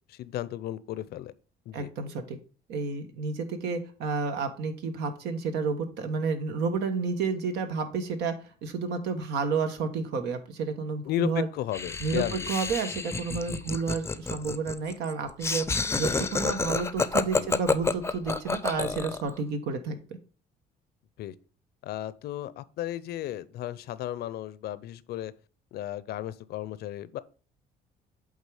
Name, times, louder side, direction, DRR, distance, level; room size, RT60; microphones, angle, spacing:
voice 1, 0.1-1.3 1.7-1.9 11.1-12.5 17.4-17.5 21.2-21.3 21.8-25.3 25.7-27.2, left 12 dB, 70° left, 0.6 m, -34 dB
voice 2, 1.7-2.4 2.7-8.3 8.6-11.5 12.0-15.7 15.9-20.0, right 4 dB, 80° right, 1.4 m, -30 dB
Laughter, 11.7-19.3, left 4 dB, 15° left, 0.6 m, -29 dB
8.3 x 3.7 x 4.9 m
cardioid pair, 110°, 17 cm